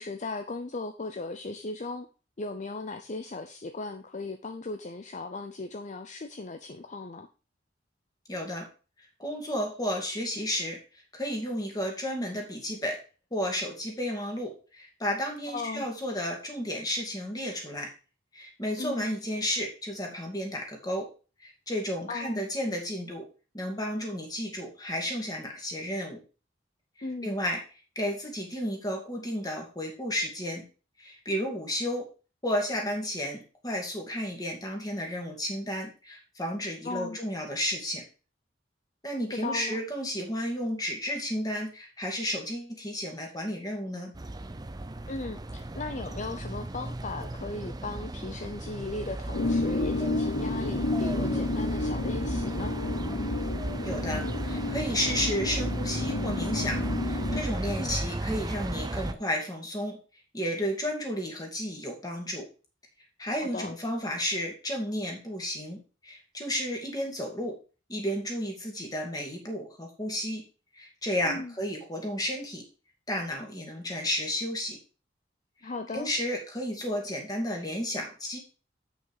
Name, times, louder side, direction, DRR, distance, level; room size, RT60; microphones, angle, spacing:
voice 1, 0.0-2.1 2.4-7.3 15.5-15.9 18.8-19.2 22.1-22.4 27.0-27.4 36.8-37.2 39.4-39.8 45.1-52.8 57.7-58.0 63.4-63.7 71.3-71.5 75.6-76.1, left 3 dB, 40° left, 7 dB, 0.6 m, -37 dB
voice 2, 8.3-8.7 9.2-10.8 11.1-13.0 13.3-17.9 18.3-21.1 21.4-23.2 23.5-26.2 27.2-27.6 28.0-30.6 31.0-32.1 32.4-38.0 39.0-44.1 53.8-60.0 60.3-62.5 63.2-67.6 67.9-70.4 70.7-72.6 73.1-74.8 75.6-78.4, equal, 20° left, 1 dB, 2.4 m, -32 dB
sound 1, 44.1-59.1, right 1 dB, 20° right, 0.6 m, -35 dB
sound 2, 49.3-57.4, left 2 dB, 75° left, 0.8 m, -31 dB
8.0 x 6.4 x 4.8 m, 0.34 s
head